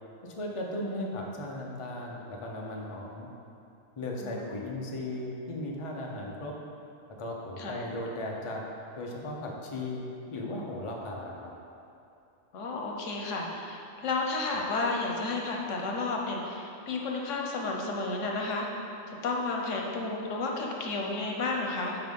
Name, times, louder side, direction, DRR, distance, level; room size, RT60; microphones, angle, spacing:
voice 1, 0.2-3.3 4.0-6.5 7.2-8.6 9.0-10.0 10.3-11.5, left 1 dB, 30° left, -1 dB, 0.7 m, -36 dB
voice 2, 12.5-18.7 19.1-22.0, left 3 dB, 85° left, 0 dB, 1.2 m, -32 dB
6.0 x 4.8 x 5.3 m, 2.7 s
omnidirectional pair, 1.2 m